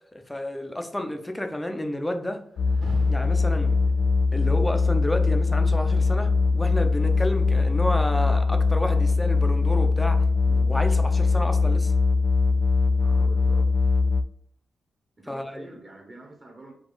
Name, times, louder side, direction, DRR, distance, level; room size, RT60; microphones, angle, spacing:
voice 1, 0.1-2.4 3.1-3.8 4.3-11.9 15.3-15.7, left 1 dB, 10° left, 6 dB, 0.5 m, -31 dB
Rain, 2.5-11.6, right 3 dB, 55° right, 1.2 m, -48 dB
sound 1, 2.6-14.2, left 3 dB, 65° left, 0.3 m, -21 dB
voice 2, 13.0-13.7 15.2-16.7, right 2 dB, 25° right, 0 dB, 0.8 m, -46 dB
4.9 x 2.3 x 3.8 m, 0.70 s
wide cardioid pair, 160°, 0 cm